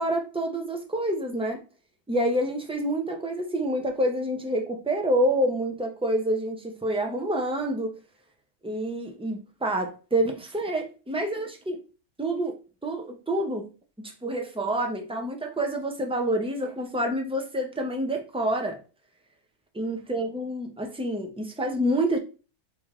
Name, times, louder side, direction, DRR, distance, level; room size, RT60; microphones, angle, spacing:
voice 1, 0.0-1.6 2.1-8.0 8.6-11.8 12.2-12.5 12.8-13.7 14.0-18.8 19.7-22.2, right 1 dB, 10° right, 0.3 m, -27 dB
3.3 x 3.1 x 3.6 m
omnidirectional pair, 1.3 m